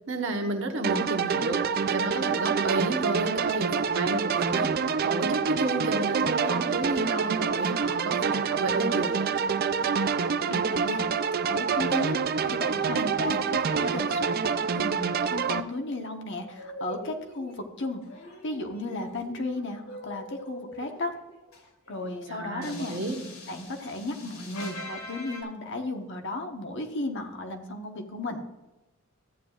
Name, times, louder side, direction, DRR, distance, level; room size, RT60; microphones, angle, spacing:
voice 1, 0.1-4.7 5.0-9.3 22.3-23.2, right 2 dB, 60° right, 3 dB, 1.2 m, -31 dB
sound 1, 0.8-15.6, right 6 dB, 45° right, 0.4 m, -27 dB
voice 2, 10.5-11.1 11.5-12.2 12.5-18.0 18.4-21.1 21.9-23.0 23.5-28.4, left 2 dB, 55° left, 4 dB, 1.2 m, -34 dB
sound 2, 16.4-17.6 18.0-25.4, left 1 dB, 75° left, 2.5 m, -43 dB
14.0 x 9.2 x 2.4 m, 1.1 s
head